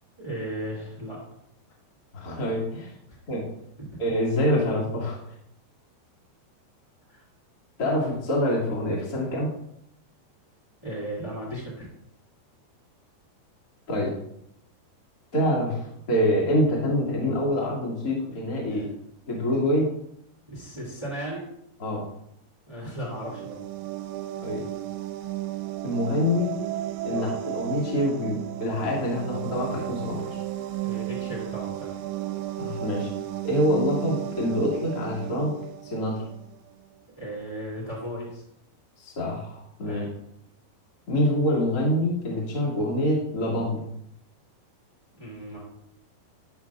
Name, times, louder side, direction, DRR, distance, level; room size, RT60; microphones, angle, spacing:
voice 1, 0.2-1.2 3.8-4.0 7.1-7.2 10.8-11.9 18.7-18.9 20.5-21.4 22.7-23.6 27.1-27.3 30.8-31.9 37.2-38.4 39.8-40.1 45.2-45.6, right 1 dB, 25° right, -5 dB, 0.6 m, -36 dB
voice 2, 2.1-2.9 3.3-3.4 4.0-5.2 7.8-9.5 13.9-14.1 15.3-15.8 16.1-18.8 19.3-19.9 21.8-22.0 24.4-24.6 25.8-26.5 27.0-30.2 32.6-33.1 33.4-35.5 35.8-36.2 39.0-40.0 41.1-43.8, equal, 40° left, -4 dB, 1.3 m, -25 dB
sound 1, 23.0-36.5, right 14 dB, 85° right, 2.7 m, -34 dB
11.0 x 5.7 x 2.4 m, 0.74 s
omnidirectional pair, 5.0 m